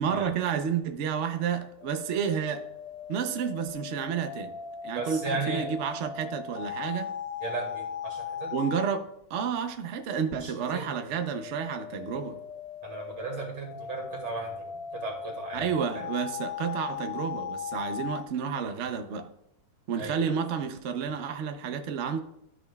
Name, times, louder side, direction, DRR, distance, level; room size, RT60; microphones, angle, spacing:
voice 1, 0.0-2.6 3.1-4.5 4.8-7.1 8.5-12.4 15.5-19.3 19.9-22.2, right 7 dB, 75° right, 6 dB, 0.6 m, -30 dB
sound 1, 1.6-8.9 10.9-18.2, left 7 dB, 75° left, 0.8 m, -38 dB
voice 2, 4.9-5.7 7.4-8.5 10.4-10.9 12.8-15.6 15.9-16.0 20.0-20.3, right 3 dB, 60° right, 1 dB, 2.8 m, -36 dB
13.0 x 6.1 x 2.3 m, 0.77 s
omnidirectional pair, 2.2 m